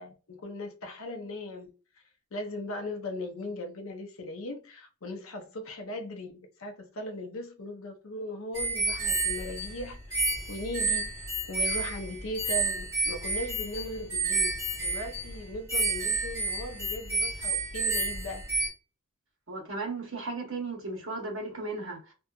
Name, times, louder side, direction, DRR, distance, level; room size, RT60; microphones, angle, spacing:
voice 1, 0.0-1.7 2.3-14.5 14.8-18.4, left 1 dB, 75° left, 0.6 m, -38 dB
sound 1, 8.5-18.7, right 3 dB, 15° right, 1.3 m, -30 dB
voice 2, 19.5-22.1, right 3 dB, 65° right, 1.1 m, -35 dB
2.7 x 2.3 x 2.3 m
head